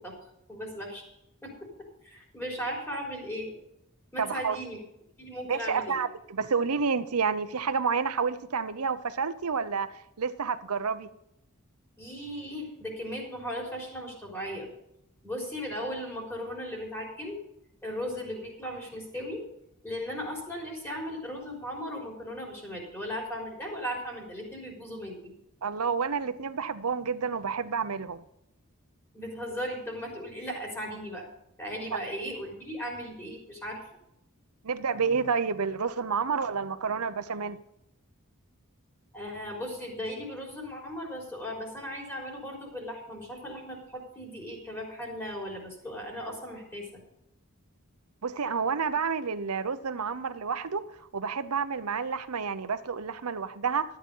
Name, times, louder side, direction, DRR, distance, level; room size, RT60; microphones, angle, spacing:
voice 1, 0.5-1.0 1.4-1.5 2.0-3.5 4.1-4.8 5.2-6.0 12.0-14.7 15.2-17.4 17.8-19.4 19.8-25.3 29.1-31.3 31.6-33.8 39.1-47.0, equal, 10° left, -1 dB, 3.8 m, -37 dB
voice 2, 4.2-4.6 5.5-9.9 10.2-11.1 25.6-28.2 34.6-37.6 48.2-50.8 51.1-53.8, right 5 dB, 85° right, 13 dB, 0.8 m, -29 dB
13.0 x 8.7 x 5.5 m, 0.80 s
head